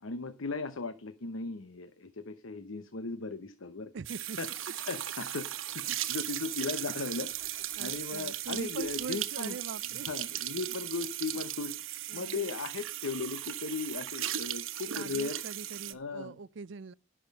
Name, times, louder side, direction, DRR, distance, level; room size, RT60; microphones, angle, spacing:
voice 1, 0.0-3.9 4.4-4.5 4.9-5.4 5.7-9.5 10.1-11.8 12.1-15.4 15.9-16.3, left 4 dB, 80° left, 0.9 m, -37 dB
voice 2, 3.9-4.4 7.8-10.1 12.1-12.5 14.9-16.9, right 4 dB, 60° right, 0.5 m, -43 dB
sound 1, 4.0-15.9, right 13 dB, 80° right, 1.1 m, -37 dB
sound 2, 4.3-8.1, left 2 dB, 20° left, 1.9 m, -60 dB
16.5 x 6.2 x 5.3 m
head